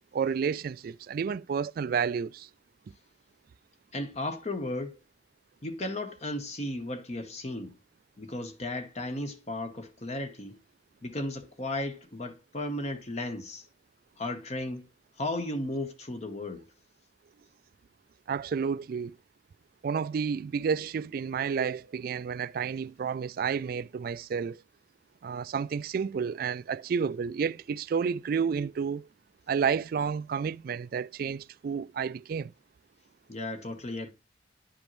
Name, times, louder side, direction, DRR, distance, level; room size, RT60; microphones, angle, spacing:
voice 1, 0.1-2.5 18.3-19.2 19.8-24.6 25.2-29.1 29.5-32.5, right 6 dB, 55° right, 0.3 m, -30 dB
voice 2, 3.9-5.0 5.6-7.8 8.2-10.6 11.0-13.6 14.2-14.9 15.2-16.7 33.3-34.1, left 1 dB, 35° left, 0.9 m, -35 dB
9.9 x 5.2 x 3.0 m
head